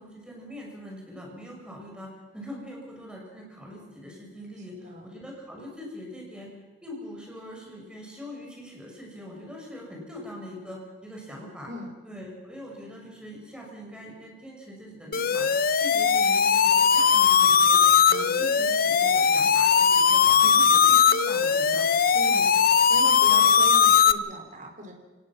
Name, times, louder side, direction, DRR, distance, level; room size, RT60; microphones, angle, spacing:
voice 1, 0.0-6.5 6.8-11.7 12.0-15.5 15.8-17.8 18.1-22.5 22.9-23.0 23.3-23.5, equal, 5° right, -1 dB, 6.0 m, -42 dB
voice 2, 4.7-5.1 11.7-11.9 22.1-22.6 22.9-24.9, equal, 45° right, 3 dB, 4.2 m, -39 dB
sound 1, 15.1-24.1, left 7 dB, 55° left, 0.7 m, -19 dB
28.5 x 18.5 x 6.1 m, 1.2 s
head